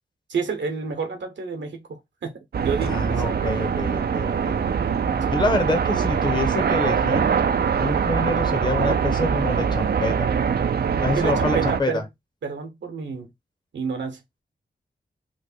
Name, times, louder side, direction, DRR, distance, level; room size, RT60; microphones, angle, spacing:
voice 1, 0.3-3.3 5.2-5.3 11.2-12.0 12.4-13.3 13.7-14.2, right 5 dB, 70° right, 0.9 m, -30 dB
sound 1, 2.5-11.8, right 6 dB, 55° right, 0.4 m, -23 dB
voice 2, 2.8-4.6 5.1-7.3 7.8-10.3 11.0-12.0, left 2 dB, 25° left, 0.9 m, -27 dB
3.2 x 2.1 x 4.0 m
cardioid pair, 45°, 19 cm